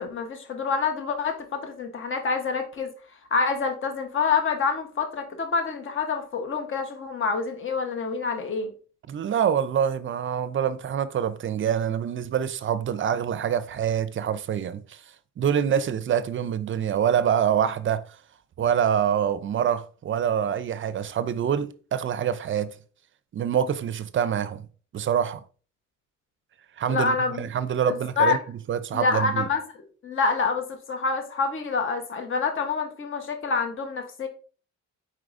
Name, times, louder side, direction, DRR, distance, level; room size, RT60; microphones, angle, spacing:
voice 1, 0.0-2.9 3.3-8.7 26.9-27.4 27.8-28.4 28.9-34.3, left 4 dB, 40° left, 1.0 m, -27 dB
voice 2, 9.1-15.0 15.4-18.0 18.6-22.7 23.3-24.6 24.9-25.4 26.8-28.4 28.7-29.5, right 8 dB, 40° right, 0.5 m, -25 dB
4.6 x 4.5 x 2.5 m
cardioid pair, 90°, 30 cm